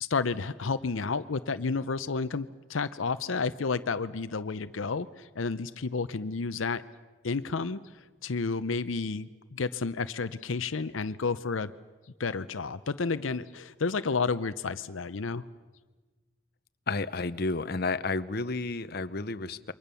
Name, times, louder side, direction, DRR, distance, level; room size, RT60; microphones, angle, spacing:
voice 1, 0.0-6.8 7.2-11.7 12.2-15.4, left 4 dB, 80° left, 13 dB, 0.7 m, -31 dB
voice 2, 16.9-19.7, left 3 dB, 55° left, 12 dB, 0.9 m, -31 dB
28.5 x 24.0 x 7.0 m, 1.3 s
head